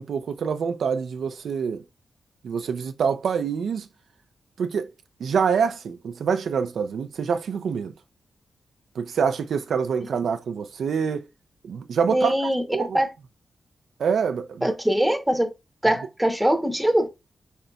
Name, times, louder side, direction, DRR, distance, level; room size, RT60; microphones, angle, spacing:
voice 1, 0.0-1.8 2.4-3.9 4.6-4.9 5.2-7.9 9.0-11.3 11.6-12.3 12.7-13.0 14.0-14.7, right 6 dB, 75° right, 0.5 m, -26 dB
voice 2, 12.1-13.1 14.6-15.5 15.8-17.1, right 1 dB, 5° right, 0.8 m, -22 dB
5.3 x 3.9 x 2.3 m
wide cardioid pair, 160°, 0 cm